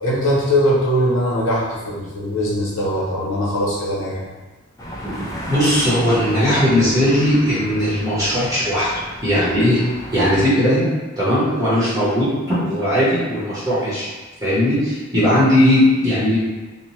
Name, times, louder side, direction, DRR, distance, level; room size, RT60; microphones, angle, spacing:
voice 1, 0.0-4.2, equal, 80° left, -6 dB, 0.9 m, -20 dB
sound 1, 4.8-10.5, equal, 15° left, 0.4 m, -33 dB
voice 2, 5.5-8.9 9.2-9.8 10.1-10.9 11.2-14.1 14.4-16.4, equal, 15° right, -11 dB, 0.8 m, -18 dB
2.7 x 2.1 x 3.0 m, 1.2 s
head